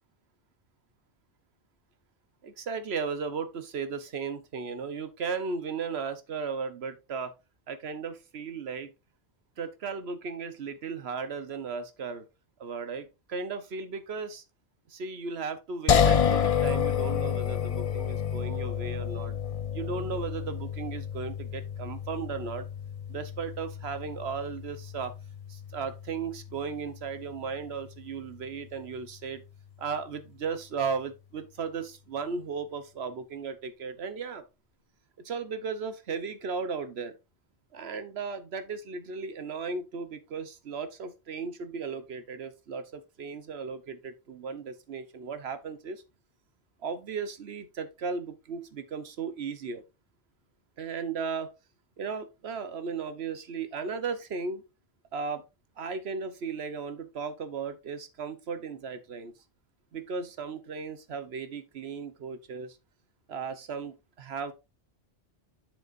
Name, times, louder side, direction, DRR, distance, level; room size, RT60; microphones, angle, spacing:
voice 1, 2.4-7.3 7.7-8.9 9.6-12.2 12.6-14.4 14.9-19.4 19.7-22.7 23.1-25.1 25.5-29.4 29.8-34.4 35.2-37.2 37.7-46.0 46.8-49.8 50.8-51.5 52.0-54.6 55.1-55.4 55.8-59.3 59.9-62.8 63.3-64.5, right 5 dB, 75° right, 1.1 m, -36 dB
sound 1, 15.9-29.0, left 8 dB, 45° left, 0.5 m, -30 dB
7.8 x 7.0 x 2.5 m
omnidirectional pair, 1.1 m